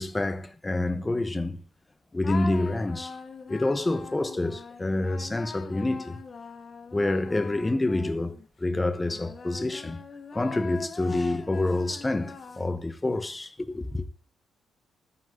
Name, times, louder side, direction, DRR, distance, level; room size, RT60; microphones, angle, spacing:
voice 1, 0.0-1.6 2.1-3.2 3.5-6.2 6.9-10.0 10.3-14.1, left 2 dB, 15° left, 1.1 m, -28 dB
sound 1, 2.2-8.5 9.0-13.0, left 5 dB, 45° left, 2.0 m, -42 dB
13.5 x 9.8 x 4.0 m
cardioid pair, 90°, 0 cm